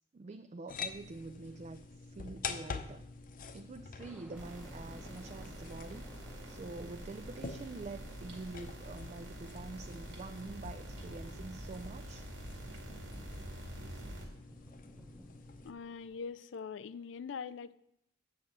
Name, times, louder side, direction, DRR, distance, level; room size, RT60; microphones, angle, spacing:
voice 1, 0.1-3.0 3.5-12.3 13.9-14.0, right 3 dB, 35° right, 9 dB, 0.4 m, -46 dB
sound 1, 0.7-15.7, left 5 dB, 50° left, 0.7 m, -47 dB
sound 2, 4.0-16.3, equal, 5° right, 0.8 m, -58 dB
sound 3, 4.3-14.3, right 1 dB, 85° right, 2.2 m, -47 dB
voice 2, 15.6-17.7, left 6 dB, 85° left, 15 dB, 0.4 m, -42 dB
8.5 x 6.0 x 7.4 m, 0.77 s
head